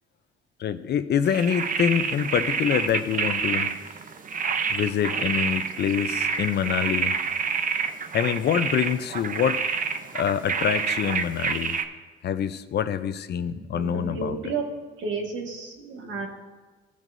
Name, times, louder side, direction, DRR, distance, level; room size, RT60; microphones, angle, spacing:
voice 1, 0.6-3.7 4.7-7.2 8.1-9.6 10.1-11.8 12.2-14.4, left 8 dB, 55° left, 12 dB, 0.5 m, -25 dB
sound 1, 1.2-11.8, right 6 dB, 45° right, 0.6 m, -28 dB
voice 2, 13.5-14.6 15.0-16.3, right 4 dB, 70° right, 1 dB, 1.7 m, -32 dB
17.0 x 6.2 x 2.6 m, 1.3 s
cardioid pair, 90°, 20 cm